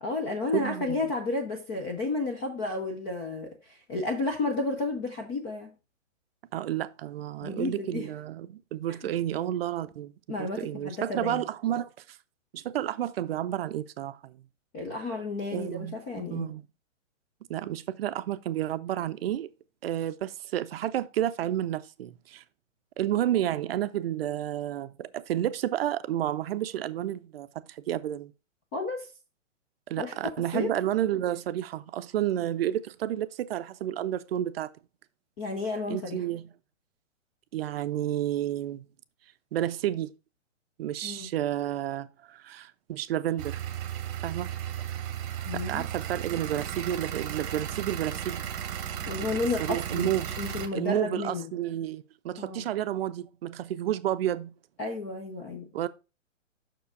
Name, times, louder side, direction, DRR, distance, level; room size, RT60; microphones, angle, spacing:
voice 1, 0.0-5.7 7.4-8.1 8.9-9.0 10.3-11.4 14.7-16.5 28.7-29.1 30.0-30.1 30.5-30.7 35.4-36.2 41.0-41.3 45.5-45.8 49.1-51.5 52.4-52.7 54.8-55.7, left 3 dB, 15° left, 0.5 m, -32 dB
voice 2, 0.5-1.0 6.5-10.1 10.4-11.9 12.5-14.3 15.5-16.0 16.3-16.6 17.5-19.5 19.8-22.4 23.0-28.3 29.9-34.7 35.9-36.5 37.5-38.9 39.5-40.1 40.8-43.6 44.2-44.5 45.5-48.5 49.6-50.3 50.7-54.5 55.7-55.9, right 12 dB, 50° right, 0.6 m, -31 dB
sound 1, 43.4-50.7, right 10 dB, 30° right, 0.9 m, -35 dB
6.2 x 4.8 x 4.7 m
hypercardioid pair, 145°, 39 cm